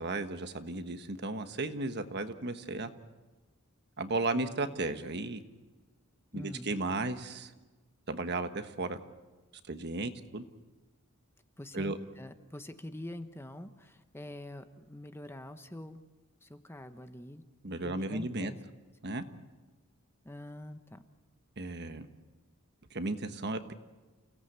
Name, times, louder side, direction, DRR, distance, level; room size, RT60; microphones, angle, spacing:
voice 1, 0.0-2.9 4.0-5.4 6.3-7.5 8.1-9.0 9.7-10.4 11.7-12.0 17.6-18.5 19.0-19.2 21.6-22.1 22.9-23.7, right 2 dB, 50° right, 8 dB, 1.3 m, -34 dB
voice 2, 6.3-6.7 11.6-16.0 16.4-18.6 20.2-21.0, left 1 dB, 10° left, 8 dB, 0.9 m, -45 dB
29.5 x 17.5 x 8.1 m, 1.2 s
head